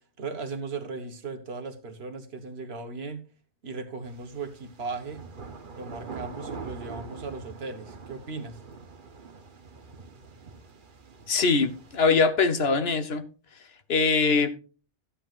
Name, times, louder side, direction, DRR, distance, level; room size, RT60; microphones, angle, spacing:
voice 1, 0.2-3.2 3.6-5.2 5.8-8.6, right 4 dB, 65° right, 1.4 m, -37 dB
sound 1, 4.0-12.0, right 4 dB, 50° right, 1.1 m, -44 dB
voice 2, 11.3-13.2 13.9-14.5, left 4 dB, 65° left, 1.2 m, -22 dB
14.0 x 10.0 x 2.4 m
omnidirectional pair, 1.1 m